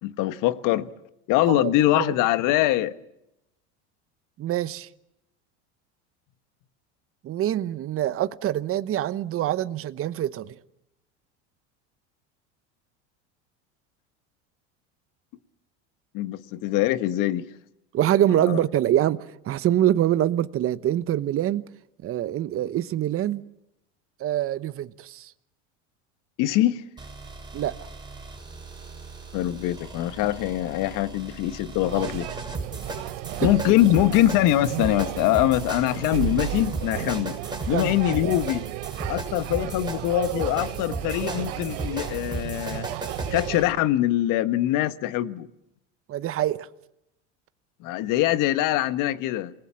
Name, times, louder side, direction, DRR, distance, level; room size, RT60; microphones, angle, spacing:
voice 1, 0.0-0.9 1.3-2.9 16.1-17.4 18.4-18.6 26.4-26.8 29.3-32.3 33.4-37.4 37.7-38.6 39.1-42.9 43.3-45.5 47.8-49.5, left 14 dB, 60° left, 1.5 m, -23 dB
voice 2, 1.5-2.1 4.4-4.9 7.2-10.5 17.9-19.2 19.4-21.6 22.0-23.4 24.2-25.3 27.5-27.7 33.4-33.5 37.7-37.9 46.1-46.7, right 12 dB, 40° right, 1.1 m, -25 dB
sound 1, 27.0-43.7, right 2 dB, 10° right, 6.4 m, -36 dB
sound 2, 31.8-43.6, right 19 dB, 70° right, 1.0 m, -34 dB
28.0 x 19.5 x 7.1 m
supercardioid pair, 100°, 35 cm